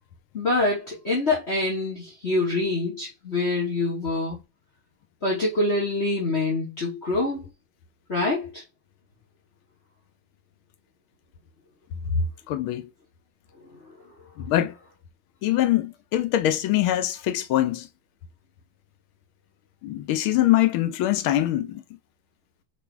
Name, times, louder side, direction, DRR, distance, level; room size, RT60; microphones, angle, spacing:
voice 1, 0.3-4.4 5.2-7.5 8.1-8.6, left 2 dB, 30° left, 3.0 m, -25 dB
voice 2, 12.2-12.9 14.4-14.8 15.4-17.9 19.8-21.8, left 12 dB, 85° left, 1.6 m, -23 dB
6.1 x 5.3 x 4.5 m
omnidirectional pair, 2.2 m